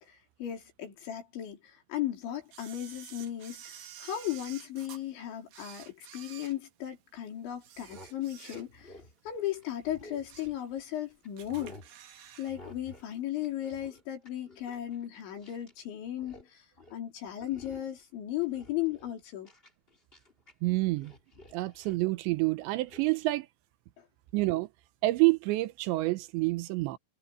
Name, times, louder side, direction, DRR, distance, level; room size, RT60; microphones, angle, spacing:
voice 1, 0.0-11.8 12.4-19.5 24.0-24.1, left 12 dB, 85° left, 6.1 m, -36 dB
Camera, 2.5-5.0 5.5-7.1 7.6-9.0 9.3-9.5 10.0-10.6 10.9-11.0 11.4-12.5 12.8-12.9, right 10 dB, 65° right, 3.2 m, -50 dB
sound 1, 7.7-10.9 11.2-11.9 12.5-13.1 13.4-15.8 16.1-16.5 16.8-17.0 17.4-18.0 18.4-20.5 20.8-22.0 22.9-23.1, left 2 dB, 15° left, 2.1 m, -52 dB
voice 2, 20.6-21.1 21.5-23.5 24.3-24.7 25.0-27.0, right 20 dB, 80° right, 3.1 m, -28 dB
omnidirectional pair, 5.2 m